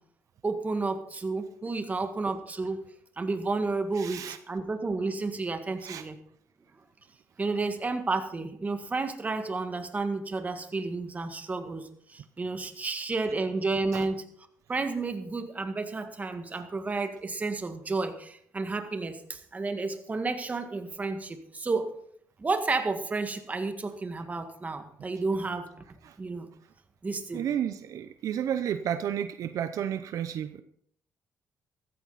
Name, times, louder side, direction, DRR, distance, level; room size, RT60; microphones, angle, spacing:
voice 1, 0.4-2.8 3.2-6.2 7.4-14.2 14.7-21.9 22.4-25.7 26.2-26.5 27.0-27.4, right 3 dB, 25° right, 7 dB, 1.8 m, -31 dB
voice 2, 3.9-4.4 5.8-6.0 13.9-14.1 26.0-26.2 27.3-30.6, right 9 dB, 70° right, 11 dB, 0.7 m, -32 dB
14.5 x 14.0 x 4.2 m, 0.64 s
cardioid pair, 105°, 6 cm